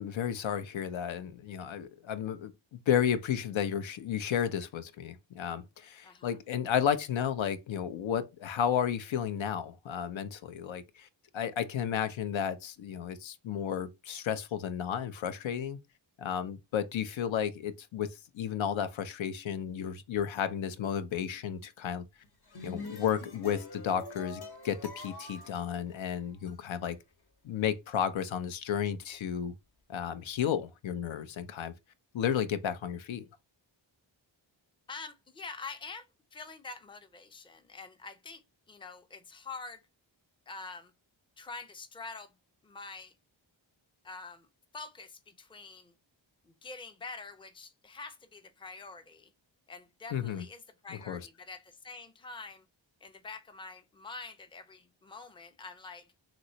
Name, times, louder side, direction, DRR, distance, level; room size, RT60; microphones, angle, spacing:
voice 1, 0.0-11.1 11.3-15.8 16.2-22.0 22.6-27.0 27.4-29.5 29.9-31.7 32.1-33.3 50.1-50.4 50.9-51.2, left 8 dB, 75° left, 0.5 m, -33 dB
voice 2, 6.0-6.4 34.9-38.4 38.7-39.8 40.5-40.9 41.4-42.3 42.6-43.1 44.0-44.5 44.7-45.9 46.4-49.3 49.7-52.6 53.0-56.1, left 4 dB, 10° left, 0.4 m, -46 dB
sound 1, 22.2-26.5, left 3 dB, 55° left, 0.9 m, -45 dB
3.0 x 3.0 x 2.6 m
cardioid pair, 60°, 47 cm